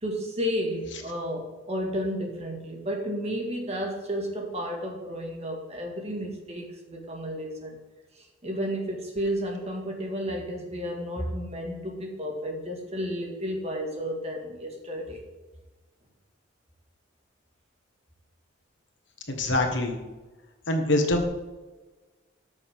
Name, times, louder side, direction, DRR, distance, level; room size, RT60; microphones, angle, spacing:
voice 1, 0.0-7.8 8.1-15.2, equal, 35° right, 1 dB, 1.9 m, -32 dB
voice 2, 19.3-20.0 20.7-21.2, left 1 dB, 65° left, 4 dB, 1.5 m, -24 dB
13.0 x 6.5 x 3.7 m, 1.2 s
head